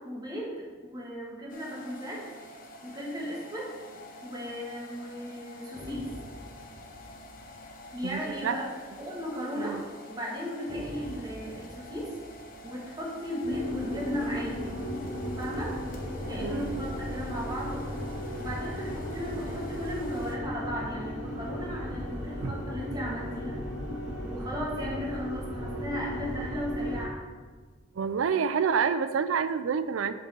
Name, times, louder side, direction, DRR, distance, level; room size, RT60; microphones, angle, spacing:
voice 1, 0.0-2.2 2.8-3.7 4.2-6.0 7.9-8.7 9.0-9.7 10.1-12.1 12.6-14.8 15.4-15.7 16.3-17.8 18.4-23.6 24.2-27.2, equal, 20° right, -4 dB, 1.7 m, -36 dB
sound 1, 1.5-20.4, left 1 dB, 45° left, 0.9 m, -48 dB
sound 2, 5.7-9.5 9.7-9.9 10.7-15.3 18.4-22.0 24.8-25.2, equal, ahead, 1.7 m, -49 dB
voice 2, 8.0-8.6 9.6-9.8 16.4-16.7 22.4-22.6 27.9-30.1, right 6 dB, 90° right, 13 dB, 0.4 m, -28 dB
sound 3, 13.4-27.0, equal, 75° left, 1.7 m, -35 dB
5.4 x 5.4 x 5.4 m, 1.4 s
head